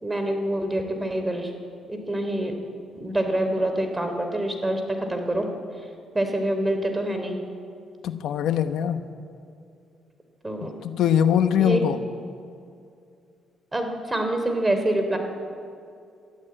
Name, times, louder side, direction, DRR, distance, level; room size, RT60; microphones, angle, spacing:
voice 1, 0.0-1.5 1.9-2.5 2.9-5.5 6.1-7.4 10.4-10.8 11.6-11.8 13.7-15.2, right 1 dB, 15° right, 5 dB, 3.3 m, -26 dB
voice 2, 8.0-9.0 10.6-12.0, left 9 dB, 80° left, 10 dB, 1.0 m, -22 dB
22.5 x 13.5 x 8.8 m, 2.5 s
cardioid pair, 90°, 0 cm